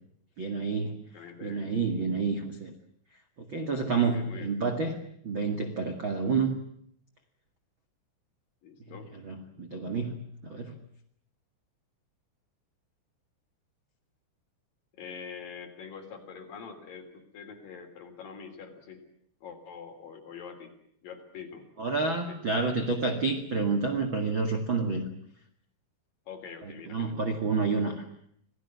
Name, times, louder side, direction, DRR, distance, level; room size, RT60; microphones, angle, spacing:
voice 1, 0.4-0.9 1.4-2.7 3.5-5.0 5.2-6.6 9.1-10.1 10.4-10.7 21.8-25.0 26.9-28.0, right 4 dB, 60° right, 5 dB, 1.3 m, -29 dB
voice 2, 1.1-1.7 4.0-4.5 8.6-9.1 14.9-19.0 19.4-20.7 21.0-21.7 22.3-22.4 26.3-27.3, left 6 dB, 45° left, 4 dB, 4.4 m, -44 dB
27.0 x 18.0 x 9.5 m, 0.69 s
omnidirectional pair, 5.9 m